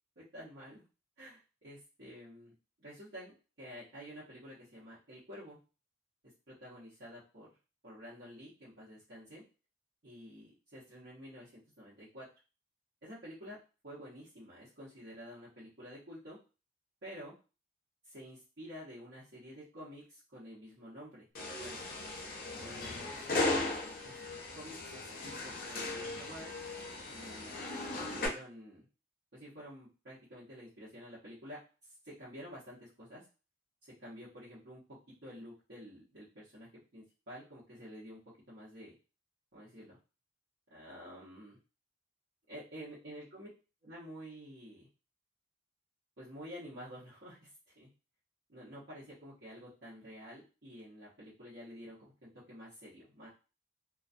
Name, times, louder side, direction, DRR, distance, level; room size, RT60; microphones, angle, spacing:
voice 1, 0.2-0.8 1.2-5.6 6.2-7.6 7.8-9.4 10.0-12.3 13.0-13.6 13.8-16.4 17.0-17.4 18.0-21.9 22.6-23.6 24.0-24.1 24.5-26.5 27.1-27.6 27.9-28.9 29.3-33.2 34.0-38.2 38.5-38.9 39.5-40.0 40.7-41.6 42.5-43.5 43.8-44.9 46.2-47.9 48.5-53.3, equal, 65° right, -11 dB, 0.9 m, -50 dB
sound 1, 21.4-28.3, left 2 dB, 50° left, 0.5 m, -37 dB
2.3 x 2.2 x 2.5 m, 0.33 s
head